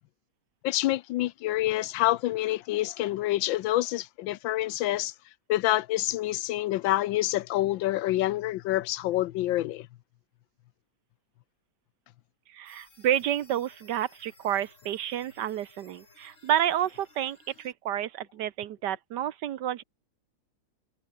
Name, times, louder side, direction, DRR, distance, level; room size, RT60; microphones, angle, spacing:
voice 1, 0.6-5.1 5.5-9.9, left 15 dB, 80° left, 1.3 m, -27 dB
voice 2, 12.5-19.8, right 11 dB, 65° right, 1.3 m, -30 dB
sound 1, 12.7-17.7, left 2 dB, 40° left, 5.0 m, -58 dB
omnidirectional pair, 2.1 m